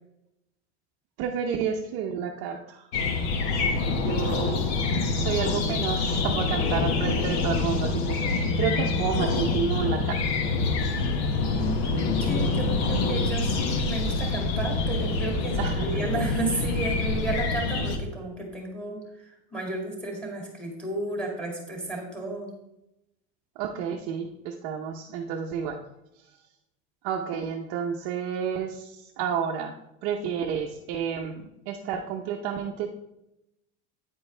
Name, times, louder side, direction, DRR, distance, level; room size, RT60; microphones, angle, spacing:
voice 1, 1.2-2.9 4.0-4.8 5.1-10.4 15.6-15.9 23.6-25.8 27.0-32.9, right 7 dB, 45° right, 2 dB, 0.7 m, -30 dB
sound 1, 2.9-18.0, left 3 dB, 70° left, 1.4 m, -26 dB
voice 2, 11.5-19.0 19.5-22.5, right 2 dB, 5° left, 0 dB, 2.3 m, -33 dB
9.3 x 9.1 x 3.3 m, 0.88 s
supercardioid pair, 175°, 34 cm